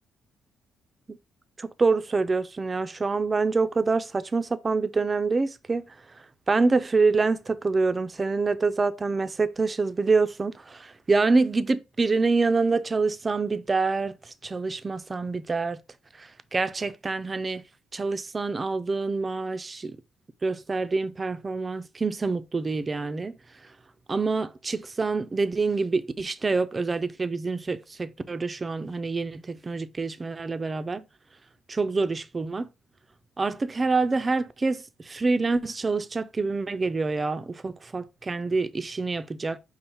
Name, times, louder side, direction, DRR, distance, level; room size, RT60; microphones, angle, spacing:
voice 1, 1.6-5.9 6.5-15.8 16.2-17.6 17.9-20.0 20.4-23.4 24.1-31.1 31.7-32.7 33.4-39.6, right 3 dB, 30° right, 0.4 m, -26 dB
5.5 x 2.0 x 4.4 m
cardioid pair, 90°, 0 cm